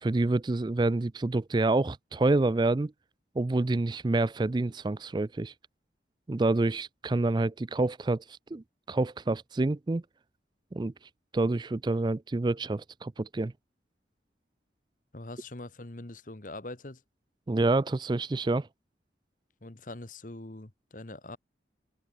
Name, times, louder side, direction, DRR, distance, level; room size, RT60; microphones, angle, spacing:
voice 1, 0.0-2.9 3.4-5.5 6.3-8.2 8.5-10.0 10.7-10.9 11.3-13.5 17.5-18.7, right 2 dB, 25° right, 0.4 m, -27 dB
voice 2, 15.1-17.0 19.6-21.4, left 2 dB, 45° left, 1.4 m, -43 dB
head